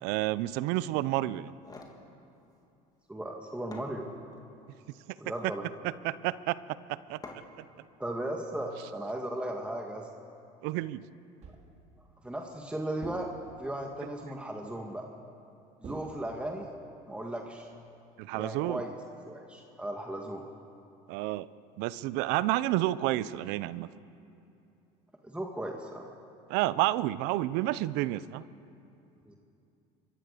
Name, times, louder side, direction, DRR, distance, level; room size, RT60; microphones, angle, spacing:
voice 1, 0.0-1.5 6.0-6.6 6.9-7.6 10.6-11.0 18.2-18.8 21.1-21.5 21.8-23.9 26.5-28.4, right 16 dB, 70° right, 17 dB, 0.8 m, -30 dB
sound 1, 1.4-2.0 3.3-3.4 3.7-4.5 5.2-5.6 7.2-7.7, left 3 dB, 20° left, 3.2 m, -48 dB
voice 2, 3.1-4.1 5.2-5.6 8.0-10.1 12.2-13.3 13.6-15.1 15.8-16.7 17.1-17.7 18.3-19.0 19.3-20.4 25.2-26.1 29.3-29.4, right 1 dB, 5° right, 1 dB, 2.1 m, -36 dB
sound 2, 11.4-11.9 13.0-13.8 15.8-16.7, right 4 dB, 40° right, 3.1 m, -47 dB
26.0 x 23.0 x 6.8 m, 2.7 s
supercardioid pair, 95°, 18 cm